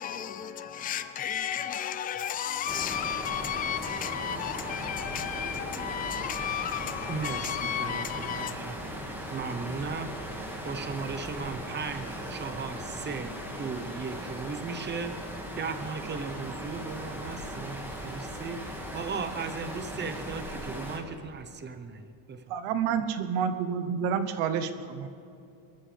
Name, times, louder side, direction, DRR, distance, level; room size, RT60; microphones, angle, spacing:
voice 1, 0.0-8.5, left 9 dB, 20° left, 0.3 m, -33 dB
sound 1, 2.7-21.0, equal, 5° right, 1.9 m, -38 dB
voice 2, 7.1-8.8 9.3-10.2 10.6-22.4, right 5 dB, 20° right, 0.9 m, -37 dB
voice 3, 22.5-25.1, right 7 dB, 80° right, 1.1 m, -29 dB
22.5 x 13.5 x 3.4 m
cardioid pair, 150°, 50 cm